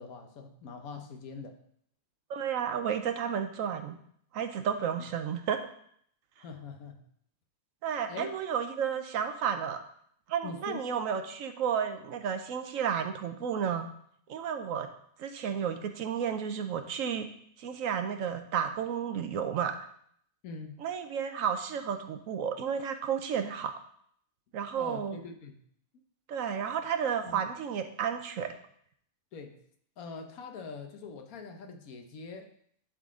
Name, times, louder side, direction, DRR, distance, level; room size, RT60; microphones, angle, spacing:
voice 1, 0.0-1.6 4.9-5.1 6.4-7.0 8.0-8.3 10.4-10.8 20.4-20.8 24.8-25.5 27.2-27.4 29.3-29.6 30.0-32.5, left 4 dB, 85° left, 5 dB, 1.3 m, -43 dB
voice 2, 2.3-4.0 4.3-5.6 7.8-9.8 10.3-13.9 14.3-14.9 15.2-17.2 17.6-19.7 20.8-23.7 24.5-25.2 26.3-28.5, right 8 dB, 75° right, 8 dB, 1.1 m, -32 dB
11.0 x 3.8 x 3.7 m, 0.66 s
omnidirectional pair, 1.5 m